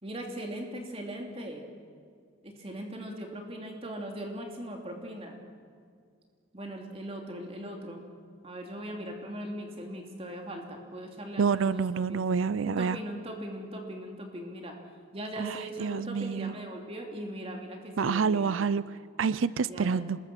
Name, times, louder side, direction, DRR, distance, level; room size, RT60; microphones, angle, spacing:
voice 1, 0.0-1.6 2.4-5.4 6.5-8.0 8.4-11.8 12.1-12.2 12.6-14.7 15.1-18.6 19.6-20.1, equal, 30° right, 1 dB, 2.9 m, -39 dB
voice 2, 11.4-13.0 15.4-16.6 18.0-20.2, right 5 dB, 80° right, 18 dB, 0.5 m, -28 dB
26.5 x 21.0 x 6.2 m, 2.1 s
head